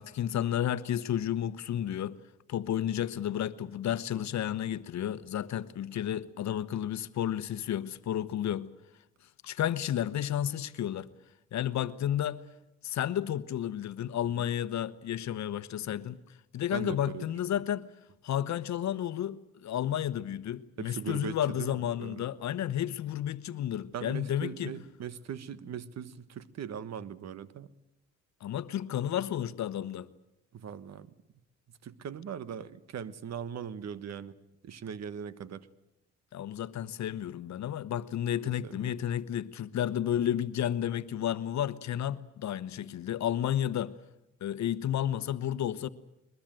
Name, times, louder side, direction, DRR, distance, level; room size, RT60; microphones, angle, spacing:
voice 1, 0.0-2.2 2.5-8.7 9.4-11.1 11.5-12.4 12.8-16.2 16.5-17.9 18.2-24.7 28.4-30.1 36.3-43.9 44.4-45.9, left 10 dB, 65° left, 1.1 m, -32 dB
voice 2, 16.7-17.2 17.5-17.6 20.8-22.2 23.9-27.7 30.5-31.1 31.8-34.3 34.6-35.7 38.4-39.0, right 8 dB, 60° right, 1.4 m, -40 dB
22.0 x 21.5 x 9.1 m
cardioid pair, 90°, 30 cm